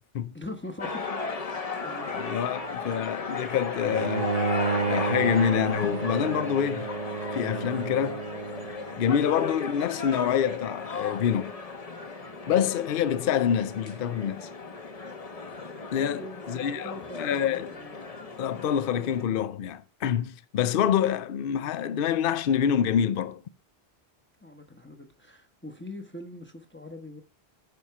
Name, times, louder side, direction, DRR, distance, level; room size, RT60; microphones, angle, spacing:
voice 1, 0.3-1.1 1.8-2.6 16.0-18.0 24.4-27.2, left 1 dB, 10° left, 0.9 m, -42 dB
sound 1, 0.8-19.2, left 4 dB, 40° left, 1.0 m, -36 dB
voice 2, 2.1-4.4 4.8-6.9 7.3-8.2 9.0-11.5 12.5-14.5 15.9-17.7 18.4-23.4, left 9 dB, 65° left, 0.7 m, -26 dB
Bowed string instrument, 3.9-9.1, right 4 dB, 45° right, 0.7 m, -31 dB
9.6 x 4.3 x 5.8 m
omnidirectional pair, 1.0 m